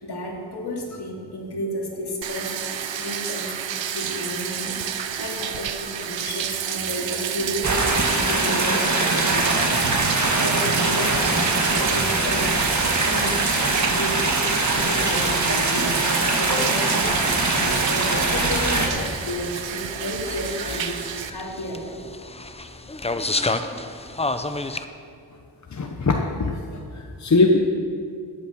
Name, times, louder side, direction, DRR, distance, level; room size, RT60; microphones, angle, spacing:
voice 1, 0.0-2.7 3.0-3.6 3.9-7.8 8.1-10.0 10.3-13.4 13.8-14.5 14.8-22.0, left 1 dB, 60° left, -1 dB, 2.5 m, -32 dB
Bathtub (filling or washing), 2.2-21.3, right 9 dB, 85° right, 0.7 m, -30 dB
sound 1, 7.6-18.9, right 2 dB, 40° right, 1.8 m, -22 dB
sound 2, 14.8-24.8, left 2 dB, 15° left, 0.6 m, -32 dB
voice 2, 25.7-27.6, left 3 dB, 40° left, 2 dB, 0.9 m, -21 dB
13.0 x 8.7 x 5.8 m, 2.4 s
wide cardioid pair, 75°, 44 cm